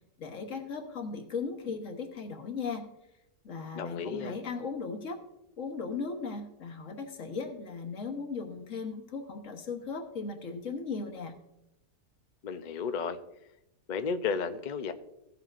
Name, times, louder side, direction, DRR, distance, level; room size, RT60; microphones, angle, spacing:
voice 1, 0.2-2.9 3.4-5.2 5.6-11.3, left 4 dB, 55° left, 4 dB, 1.5 m, -37 dB
voice 2, 3.7-4.4 12.4-13.2 13.9-14.9, left 5 dB, 85° left, 9 dB, 0.4 m, -33 dB
15.5 x 7.7 x 2.5 m, 0.86 s
omnidirectional pair, 1.7 m